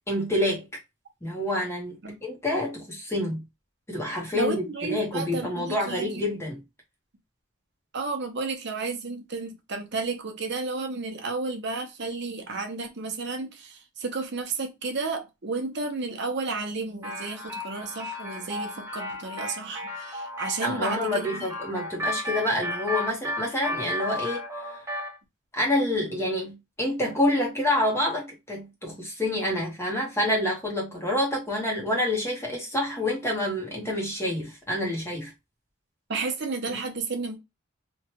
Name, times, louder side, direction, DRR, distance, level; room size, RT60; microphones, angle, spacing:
voice 1, 0.1-0.7 1.2-2.0 2.2-3.4 3.9-6.6 20.6-24.7 25.5-35.3 36.7-36.8, left 1 dB, 15° left, 0.9 m, -27 dB
voice 2, 4.3-6.2 7.9-21.5 36.1-37.4, right 3 dB, 55° right, 0.8 m, -32 dB
sound 1, 17.0-25.2, left 1 dB, 15° right, 0.9 m, -34 dB
3.1 x 2.3 x 2.8 m
head